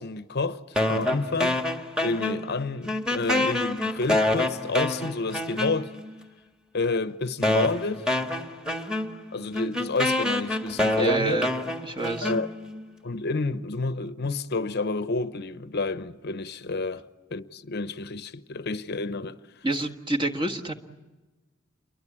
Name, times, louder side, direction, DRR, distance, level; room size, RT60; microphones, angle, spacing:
voice 1, 0.0-1.6 2.0-5.9 6.7-8.1 9.3-11.4 12.2-12.5 13.0-19.4, left 3 dB, 55° left, 0.8 m, -29 dB
sound 1, 0.8-2.6 2.9-6.1 6.8-6.9 7.4-12.8, left 1 dB, 5° right, 1.8 m, -27 dB
voice 2, 10.9-11.5 11.8-12.3 19.6-20.7, right 2 dB, 25° right, 1.6 m, -27 dB
29.0 x 23.5 x 8.6 m
head